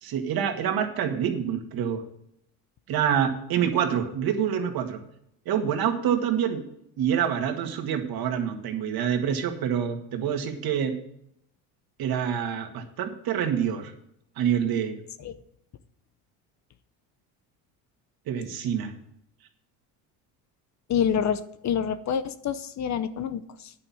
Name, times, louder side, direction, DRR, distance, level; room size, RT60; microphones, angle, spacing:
voice 1, 0.0-2.0 2.9-5.0 5.5-6.6 7.0-10.9 12.0-13.9 14.4-15.0 18.3-18.9, right 8 dB, 60° right, 6 dB, 1.9 m, -26 dB
voice 2, 20.9-23.7, left 8 dB, 40° left, 13 dB, 0.8 m, -27 dB
9.7 x 6.0 x 8.5 m, 0.73 s
supercardioid pair, 95°, 42 cm